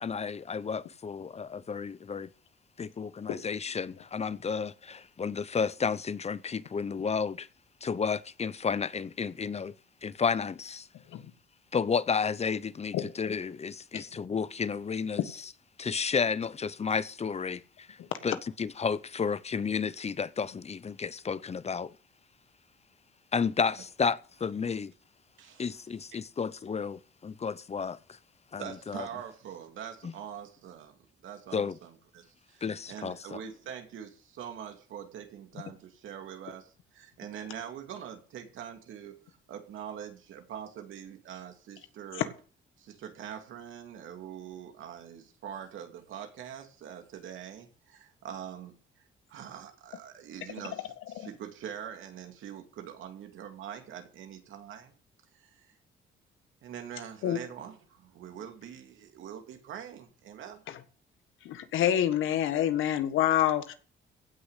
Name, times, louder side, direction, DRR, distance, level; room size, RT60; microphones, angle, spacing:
voice 1, 0.0-2.3 2.8-7.5 7.8-9.7 10.0-10.9 11.7-15.4 15.8-18.0 18.2-21.9 23.3-24.2 24.4-24.9 25.6-28.0 28.5-29.1 30.0-30.1 31.5-31.8 32.6-33.2, left 5 dB, 30° left, 0.8 m, -32 dB
voice 2, 25.4-25.8 28.6-42.3 42.8-54.9 55.3-55.7 56.6-60.6, right 9 dB, 80° right, 2.6 m, -44 dB
voice 3, 61.4-63.7, left 11 dB, 85° left, 1.6 m, -27 dB
16.0 x 6.3 x 8.2 m
cardioid pair, 90°, 20 cm